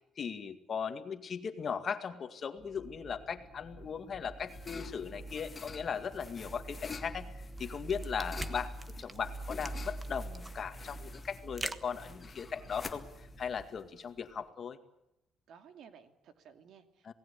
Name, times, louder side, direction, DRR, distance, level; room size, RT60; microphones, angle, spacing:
voice 1, 0.2-7.3 7.6-8.7 9.0-14.8 17.0-17.1, left 6 dB, 40° left, 8 dB, 2.1 m, -38 dB
sound 1, 2.6-13.6, right 2 dB, 5° left, 3.7 m, -46 dB
sound 2, 3.8-14.4, left 4 dB, 20° left, 1.9 m, -49 dB
sound 3, 7.5-12.7, right 3 dB, 15° right, 1.3 m, -44 dB
voice 2, 15.5-17.1, right 7 dB, 65° right, 8 dB, 2.6 m, -56 dB
27.5 x 18.5 x 8.3 m, 0.86 s
cardioid pair, 145°, 0 cm